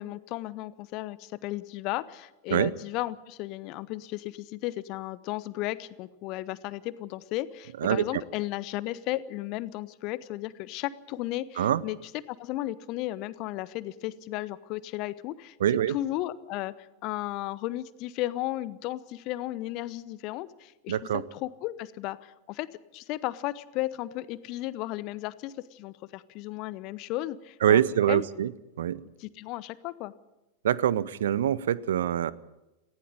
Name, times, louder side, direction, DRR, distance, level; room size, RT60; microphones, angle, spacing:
voice 1, 0.0-12.0 12.3-15.6 15.9-22.7 22.9-27.8 28.1-28.2 29.2-30.1, left 16 dB, 40° left, 18 dB, 0.9 m, -34 dB
voice 2, 15.6-16.0 20.9-21.2 27.6-28.5 28.8-29.0 30.6-32.3, right 10 dB, 60° right, 20 dB, 0.7 m, -24 dB
19.0 x 15.0 x 9.9 m, 1.0 s
figure-of-eight pair, 90°, 0 cm